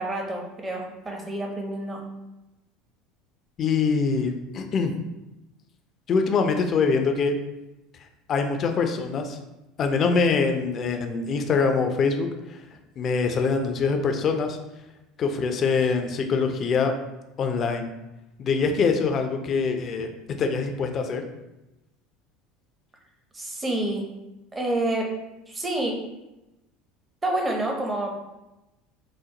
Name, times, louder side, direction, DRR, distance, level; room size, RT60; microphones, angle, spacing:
voice 1, 0.0-2.0 23.3-24.1 24.5-25.1 25.5-26.0 27.2-28.1, right 1 dB, 20° right, 0 dB, 0.8 m, -28 dB
voice 2, 3.6-4.9 6.1-7.4 8.3-9.4 9.8-12.6 13.0-14.6 15.2-16.9 17.4-17.9 18.4-20.1 20.4-21.2, left 5 dB, 40° left, 5 dB, 0.5 m, -24 dB
5.0 x 2.0 x 2.9 m, 0.98 s
hypercardioid pair, 75°, 0 cm